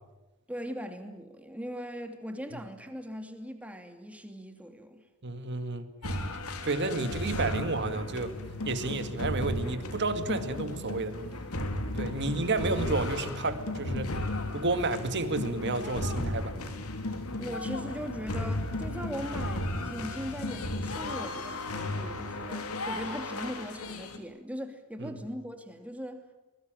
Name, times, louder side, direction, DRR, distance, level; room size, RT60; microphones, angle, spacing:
voice 1, 0.5-5.0 17.4-26.4, equal, 5° right, 6 dB, 2.7 m, -40 dB
voice 2, 5.2-5.9 6.6-8.3 8.6-11.1 11.9-14.2 14.5-16.5 25.0-25.2, right 2 dB, 55° right, 9 dB, 2.2 m, -31 dB
sound 1, 6.0-24.2, left 1 dB, 85° left, 3.0 m, -35 dB
24.0 x 22.0 x 9.2 m, 1.0 s
head